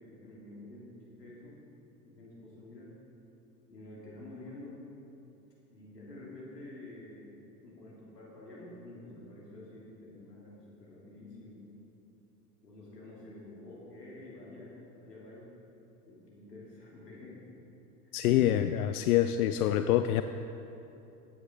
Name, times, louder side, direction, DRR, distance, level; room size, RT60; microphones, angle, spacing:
voice 1, 0.0-1.6 2.0-2.9 3.7-4.8 5.7-7.2 7.6-11.6 12.6-15.5 16.1-17.5 18.0-18.2, left 2 dB, 85° left, -5 dB, 3.1 m, -49 dB
voice 2, 18.1-20.2, left 12 dB, 70° left, 10 dB, 0.5 m, -26 dB
15.0 x 9.5 x 3.9 m, 3.0 s
figure-of-eight pair, 80°, 47 cm